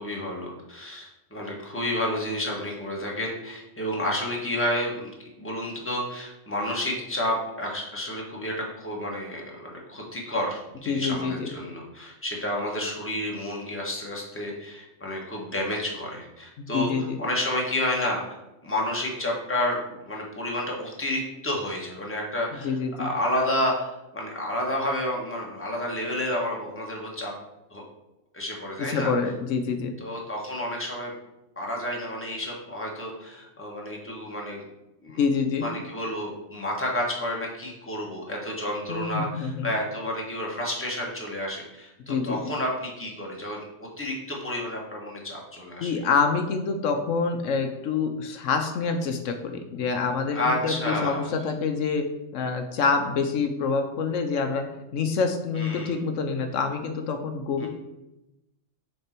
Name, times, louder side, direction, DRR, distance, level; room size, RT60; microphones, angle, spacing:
voice 1, 0.0-5.1 5.4-18.4 18.6-27.3 27.7-27.8 28.3-29.1 30.0-31.1 31.6-34.6 35.0-35.2 35.6-45.9 50.3-51.3 55.5-56.0 57.6-57.7, left 1 dB, 10° left, -2 dB, 1.3 m, -30 dB
voice 2, 10.9-11.5 16.6-17.2 22.6-23.1 28.8-29.9 35.2-35.7 38.9-39.7 42.1-42.4 45.8-57.7, left 5 dB, 75° left, 6 dB, 1.0 m, -26 dB
6.6 x 4.1 x 4.4 m, 0.94 s
omnidirectional pair, 1.3 m